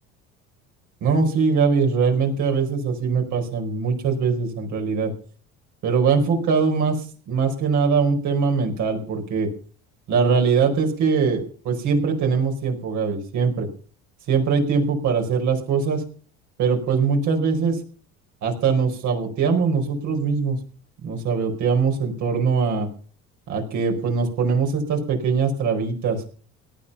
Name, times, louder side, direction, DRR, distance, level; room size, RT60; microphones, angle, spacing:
voice 1, 1.0-5.1 5.8-9.5 10.1-13.7 14.3-16.0 16.6-17.8 18.4-20.6 21.0-22.9 23.5-26.2, right 5 dB, 65° right, 2 dB, 4.9 m, -22 dB
18.0 x 11.5 x 5.6 m, 0.42 s
supercardioid pair, 85°, 32 cm